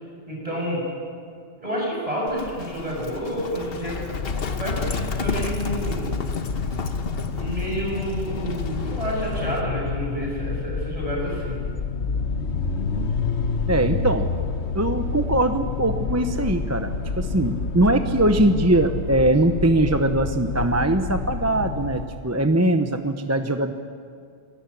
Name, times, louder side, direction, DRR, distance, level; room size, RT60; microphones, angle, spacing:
voice 1, 0.3-0.8 1.6-4.1 4.5-6.1 7.3-11.6, equal, 35° right, -3 dB, 6.8 m, -29 dB
Livestock farm animals working animals, 2.3-9.6, left 4 dB, 60° left, 1.3 m, -34 dB
sound 1, 3.8-22.2, left 4 dB, 90° left, 1.4 m, -28 dB
voice 2, 13.7-14.3 14.7-23.7, right 1 dB, 15° right, 7 dB, 0.9 m, -21 dB
27.5 x 18.5 x 8.6 m, 2.3 s
omnidirectional pair, 1.1 m